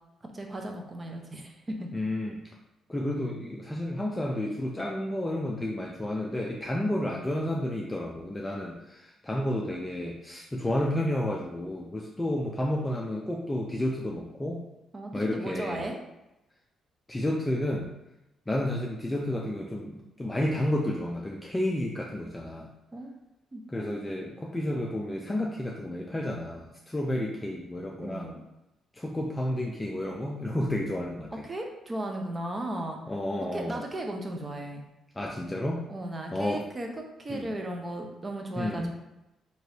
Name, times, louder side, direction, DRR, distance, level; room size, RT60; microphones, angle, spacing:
voice 1, 0.3-1.9 14.9-16.0 22.9-23.1 23.5-23.6 28.0-28.4 31.3-33.0 33.5-34.8 35.9-36.9 37.2-38.9, right 1 dB, 25° right, 2 dB, 0.6 m, -35 dB
voice 2, 1.9-2.4 2.9-14.6 15.1-15.9 17.1-17.9 18.5-22.7 23.7-28.3 28.9-31.5 33.1-33.8 35.2-35.8 36.3-36.6 37.3-37.5 38.6-38.9, left 1 dB, 15° left, -2 dB, 0.4 m, -31 dB
3.1 x 2.9 x 2.8 m, 0.92 s
cardioid pair, 90°, 0 cm